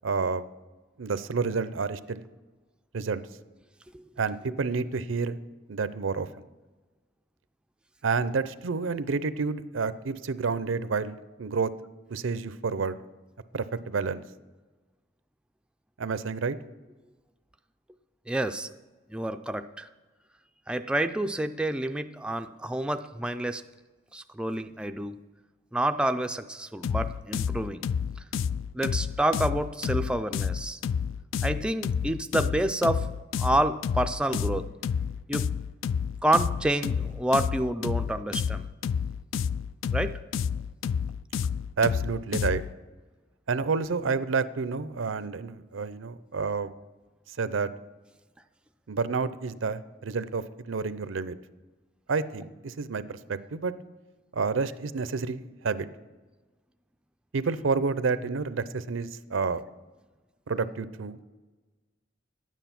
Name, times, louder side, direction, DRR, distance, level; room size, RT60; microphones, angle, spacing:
voice 1, 0.0-0.4 1.0-2.2 2.9-3.2 4.2-5.4 5.7-6.3 8.0-11.7 12.1-13.0 13.5-14.2 16.0-16.6 41.8-42.6 43.5-46.7 47.4-47.7 48.9-51.4 52.1-53.7 54.3-55.9 57.3-59.6 60.5-61.2, right 4 dB, 85° right, 14 dB, 0.6 m, -29 dB
voice 2, 18.3-18.7 19.1-19.9 20.7-23.6 24.1-25.1 25.7-27.8 28.7-30.8 31.4-33.1 33.4-34.7 35.3-35.5 36.2-38.7 39.9-40.2, right 1 dB, 5° right, 7 dB, 0.3 m, -28 dB
sound 1, 26.8-42.7, left 7 dB, 90° left, 0.3 m, -30 dB
11.0 x 9.1 x 5.9 m, 1.3 s
head